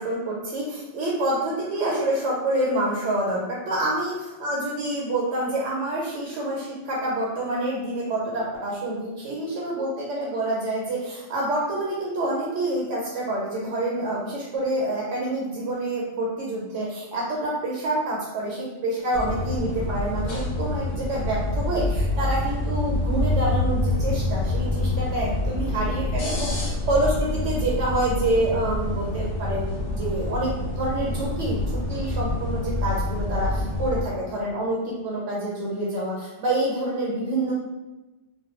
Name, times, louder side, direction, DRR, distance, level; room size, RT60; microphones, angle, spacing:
voice 1, 0.0-31.6 31.9-37.5, right 1 dB, 80° right, -4 dB, 0.9 m, -27 dB
sound 1, 19.1-34.0, left 2 dB, 60° left, 0.7 m, -27 dB
2.2 x 2.0 x 2.9 m, 1.1 s
omnidirectional pair, 1.2 m